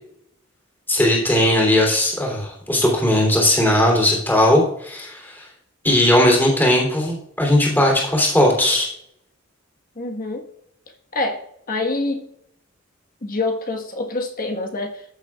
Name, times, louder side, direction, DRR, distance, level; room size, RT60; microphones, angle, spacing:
voice 1, 0.9-5.4 5.8-8.9, left 1 dB, 10° left, -2 dB, 3.0 m, -18 dB
voice 2, 10.0-10.5 11.1-11.4 11.7-12.3 13.2-15.0, left 2 dB, 45° left, 3 dB, 1.4 m, -26 dB
14.5 x 6.9 x 2.4 m, 0.73 s
head